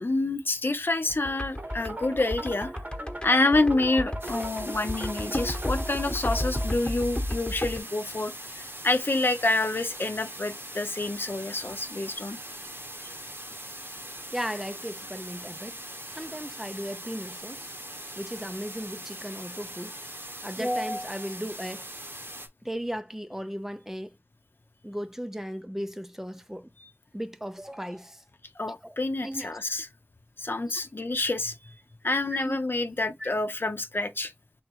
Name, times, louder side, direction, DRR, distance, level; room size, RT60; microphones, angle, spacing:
voice 1, 0.0-2.7 3.2-12.4 13.0-13.1 28.6-29.9 30.4-31.7 32.0-34.3, left 2 dB, 65° left, 0.7 m, -28 dB
sound 1, 1.1-7.8, left 1 dB, 25° left, 1.1 m, -32 dB
sound 2, 1.5-6.7, right 1 dB, 45° right, 1.0 m, -39 dB
sound 3, 4.2-22.5, right 1 dB, 70° right, 1.3 m, -41 dB
voice 2, 14.3-15.8 16.1-17.7 18.2-20.0 20.4-21.9 22.6-24.1 24.8-26.7 27.1-28.2 28.8-29.0 29.2-29.5 32.3-32.6 33.2-33.3, equal, 10° right, 0.5 m, -35 dB
3.5 x 3.1 x 4.6 m
wide cardioid pair, 50°, 4 cm